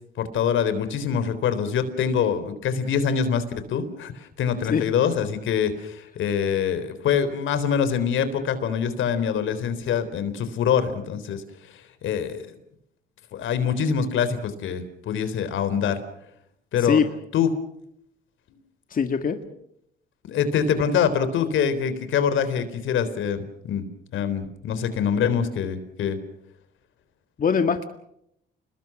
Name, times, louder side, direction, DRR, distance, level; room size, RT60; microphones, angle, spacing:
voice 1, 0.2-11.4 12.0-12.5 13.3-16.0 16.7-17.0 17.3-17.5 20.2-23.9 24.1-26.2, left 7 dB, 80° left, 12 dB, 3.7 m, -24 dB
voice 2, 18.9-19.4 27.4-27.8, left 6 dB, 45° left, 7 dB, 1.9 m, -22 dB
29.5 x 21.0 x 6.2 m, 0.76 s
cardioid pair, 90°, 20 cm